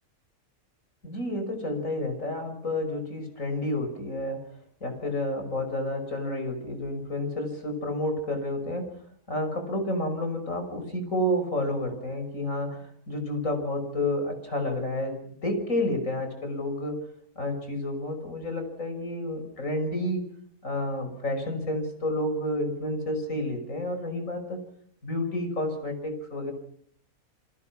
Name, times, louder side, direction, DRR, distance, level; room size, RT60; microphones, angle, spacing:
voice 1, 1.0-4.5 4.8-8.9 9.3-17.0 17.4-20.2 20.6-24.6 25.0-26.5, left 1 dB, 65° left, 6 dB, 6.2 m, -30 dB
29.5 x 24.5 x 6.1 m, 0.63 s
omnidirectional pair, 1.5 m